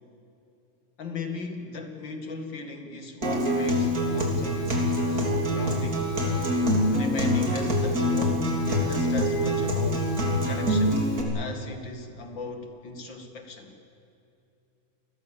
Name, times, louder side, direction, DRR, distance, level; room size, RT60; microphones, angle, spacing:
voice 1, 1.0-4.6 5.1-6.1 6.9-10.1 10.5-11.1 11.3-13.7, left 3 dB, 60° left, 5 dB, 2.8 m, -37 dB
Acoustic guitar, 3.2-11.2, equal, 40° right, 3.8 m, -25 dB
29.5 x 20.5 x 7.2 m, 2.8 s
omnidirectional pair, 2.3 m